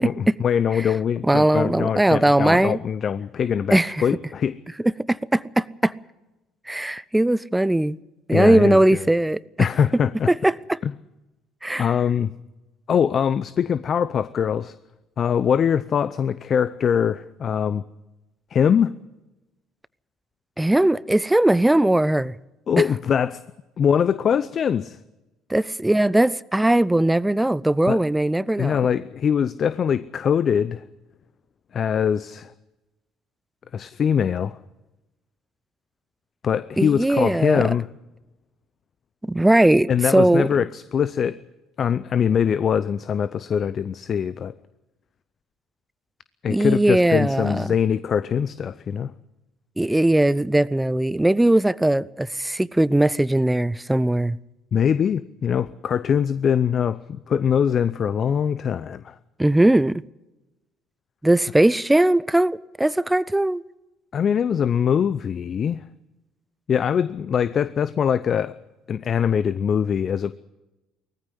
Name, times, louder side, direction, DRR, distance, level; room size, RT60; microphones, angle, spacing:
voice 1, 0.0-4.6 8.3-9.0 9.6-10.3 10.8-10.9 11.8-12.3 12.9-14.7 15.2-17.8 18.5-18.9 22.7-23.4 23.8-25.0 27.9-28.0 28.6-30.8 31.7-32.5 33.7-34.6 36.4-37.9 39.9-41.4 41.8-44.5 46.4-49.1 54.7-59.2 64.1-65.8 66.7-68.6 68.9-70.3, left 8 dB, 45° left, 0.6 m, -22 dB
voice 2, 1.2-2.8 3.7-4.0 4.8-5.9 6.7-8.0 8.3-9.7 10.3-10.8 11.6-11.9 20.6-22.3 22.8-22.9 25.5-28.8 36.8-37.6 39.2-40.5 46.5-47.7 49.8-54.4 59.4-60.0 61.2-63.6, right 1 dB, 10° right, 0.6 m, -19 dB
19.0 x 14.5 x 9.8 m
hypercardioid pair, 55°, 0 cm